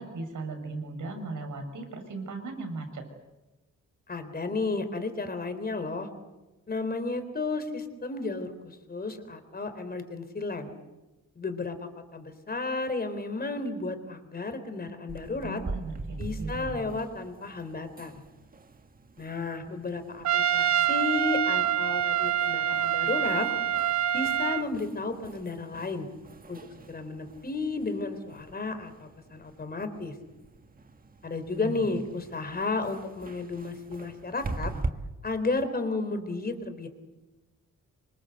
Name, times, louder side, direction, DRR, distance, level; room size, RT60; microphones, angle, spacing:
voice 1, 0.0-3.0 15.4-16.9 31.6-32.0, right 3 dB, 85° right, 6 dB, 6.7 m, -37 dB
voice 2, 4.1-6.1 6.7-10.7 11.4-15.6 16.2-18.2 19.2-23.5 24.1-26.1 26.5-26.6 26.9-30.1 31.2-34.7 35.2-36.9, left 3 dB, 30° left, 9 dB, 3.8 m, -33 dB
sound 1, 15.1-34.9, right 3 dB, 30° right, 1.6 m, -43 dB
Trumpet, 20.3-24.7, right 10 dB, 65° right, 0.9 m, -26 dB
27.5 x 25.0 x 8.1 m, 1.1 s
wide cardioid pair, 155°, 30 cm